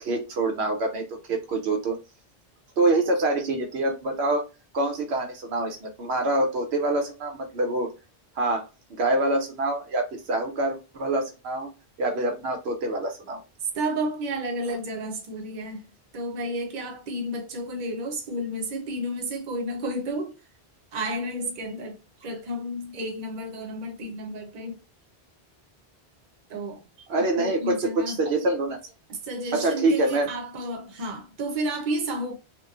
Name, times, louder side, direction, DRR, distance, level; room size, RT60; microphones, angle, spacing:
voice 1, 0.0-2.0 2.8-4.4 4.7-7.9 8.4-11.7 12.0-13.4 27.1-28.8 29.5-30.3, right 2 dB, 80° right, 0.9 m, -25 dB
voice 2, 13.7-15.8 16.1-20.3 20.9-24.8 26.5-26.8 27.2-28.2 29.1-32.3, right 1 dB, 50° right, 0.8 m, -31 dB
2.9 x 2.1 x 2.4 m
omnidirectional pair, 1.1 m